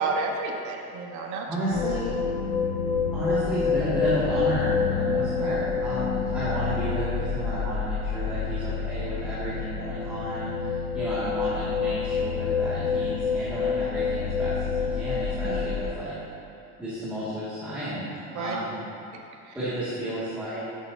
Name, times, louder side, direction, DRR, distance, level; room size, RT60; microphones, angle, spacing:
voice 1, 0.0-1.5 5.4-5.6 15.4-15.6 18.3-18.5 19.4-19.5, right 4 dB, 65° right, 1 dB, 1.3 m, -30 dB
voice 2, 1.5-2.2 3.1-16.1 16.8-18.8 19.5-20.7, right 1 dB, 5° right, -14 dB, 2.2 m, -32 dB
sound 1, 1.7-15.9, left 5 dB, 65° left, 1.1 m, -28 dB
14.0 x 8.1 x 2.8 m, 2.6 s
cardioid pair, 165°, 31 cm